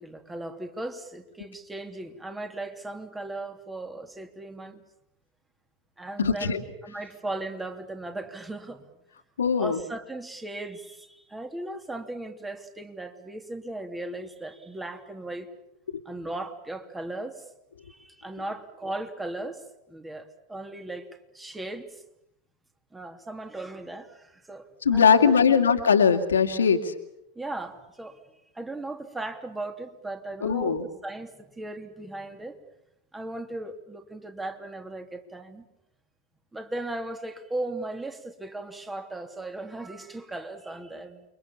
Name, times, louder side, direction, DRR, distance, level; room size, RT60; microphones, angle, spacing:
voice 1, 0.0-4.8 6.0-8.9 9.6-15.5 16.0-17.4 17.9-19.6 19.9-21.1 21.3-22.0 22.9-24.7 24.9-25.4 27.3-28.2 28.5-32.6 33.1-35.6 36.5-41.2, right 2 dB, 10° right, 6 dB, 3.0 m, -37 dB
voice 2, 6.2-6.6 9.4-9.8 24.8-26.9 30.4-30.8, left 6 dB, 75° left, 6 dB, 2.4 m, -21 dB
29.0 x 24.0 x 7.2 m, 0.82 s
figure-of-eight pair, 90°, 0 cm